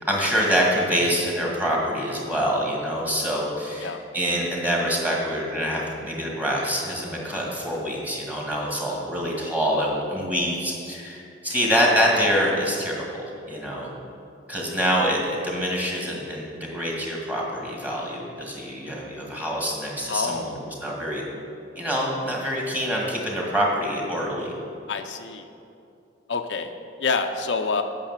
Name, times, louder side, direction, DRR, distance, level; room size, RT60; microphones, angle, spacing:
voice 1, 0.0-13.9 14.5-20.5 20.8-21.2 21.8-24.5, equal, 10° right, -3 dB, 1.7 m, -25 dB
voice 2, 20.1-20.5 24.9-25.5 26.3-26.7 27.0-27.8, left 4 dB, 70° left, 6 dB, 0.6 m, -27 dB
8.8 x 6.1 x 7.3 m, 2.7 s
head